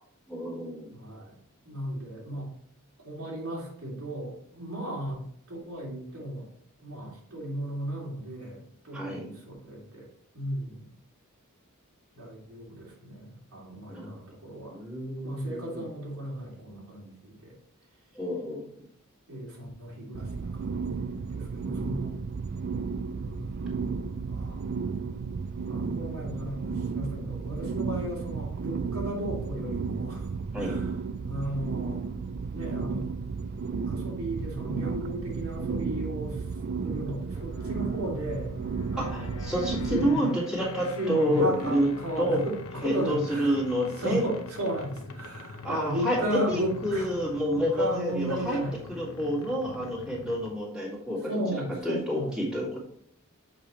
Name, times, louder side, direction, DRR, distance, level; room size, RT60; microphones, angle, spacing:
voice 1, 0.3-0.9 8.9-9.3 13.9-14.1 14.7-15.8 18.1-18.6 30.5-30.8 39.0-41.9 42.2-42.4 42.8-44.2 45.6-46.2 46.5-48.6 49.0-51.2 51.8-52.8, equal, 5° right, -6 dB, 2.0 m, -29 dB
voice 2, 0.9-1.3 1.7-2.5 3.0-6.5 6.8-10.1 10.3-10.9 12.1-14.8 15.2-17.5 19.3-22.1 23.1-24.6 25.7-30.3 30.6-31.0 31.3-32.0 32.5-33.1 33.9-36.4 36.8-38.5 38.9-39.3 39.9-40.3 41.0-43.6 44.0-47.1 47.5-48.8 51.2-52.7, right 1 dB, 85° right, -4 dB, 2.8 m, -35 dB
sound 1, 20.1-40.1, right 5 dB, 45° right, 0.3 m, -33 dB
sound 2, 37.3-50.7, left 4 dB, 75° left, 0.7 m, -43 dB
6.8 x 5.4 x 3.1 m, 0.67 s
head